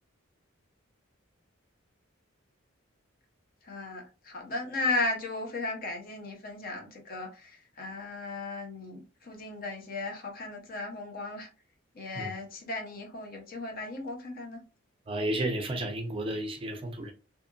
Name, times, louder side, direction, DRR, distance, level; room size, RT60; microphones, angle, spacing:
voice 1, 3.7-11.5 12.0-14.6, left 2 dB, 45° left, 0.6 m, -35 dB
voice 2, 15.1-17.1, right 1 dB, 25° right, 0.4 m, -32 dB
2.7 x 2.4 x 2.3 m
head